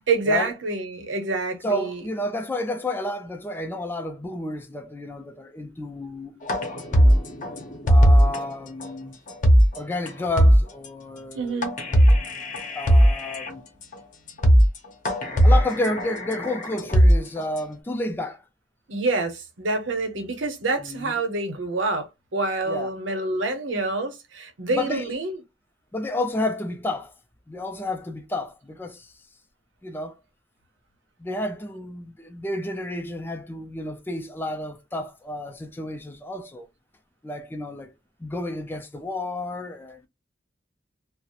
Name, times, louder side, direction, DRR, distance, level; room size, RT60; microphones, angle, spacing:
voice 1, 0.1-2.0 11.3-11.8 18.9-22.1 22.3-25.4, right 3 dB, 85° right, 0.8 m, -27 dB
voice 2, 1.6-6.4 7.0-7.2 7.9-9.2 9.8-11.6 11.9-12.1 12.7-13.7 15.4-18.4 20.8-21.2 22.7-22.9 24.7-25.1 25.9-27.1 27.5-29.1 29.8-30.1 31.2-36.7 37.2-37.9 38.2-40.1, left 1 dB, 10° left, 0.3 m, -31 dB
sound 1, 6.5-8.4 8.8-8.9 9.3-9.8 10.1-10.2 10.4-10.9 11.6-13.5 13.9-14.0 14.3-14.8 15.1-17.6, equal, 40° left, 0.7 m, -18 dB
2.4 x 2.0 x 2.8 m
head